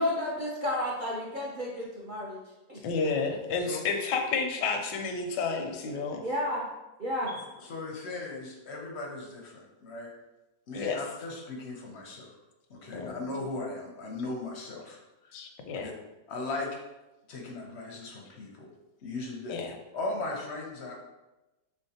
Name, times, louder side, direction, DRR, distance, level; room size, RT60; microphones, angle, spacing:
voice 1, 0.0-2.4 2.7-2.8 3.3-3.4 6.2-6.7 7.0-7.3, left 1 dB, 60° right, -6 dB, 0.5 m, -31 dB
voice 2, 2.8-6.2 10.7-11.0 12.9-13.4 15.3-15.9 19.5-19.7, left 4 dB, 90° left, 4 dB, 1.3 m, -31 dB
voice 3, 7.3-10.1 10.7-12.3 12.7-15.3 15.8-15.9 16.3-16.7 17.3-18.7 19.0-19.6 19.9-21.0, left 2 dB, 60° left, 0 dB, 0.7 m, -38 dB
4.5 x 3.6 x 2.8 m, 1.0 s
omnidirectional pair, 1.8 m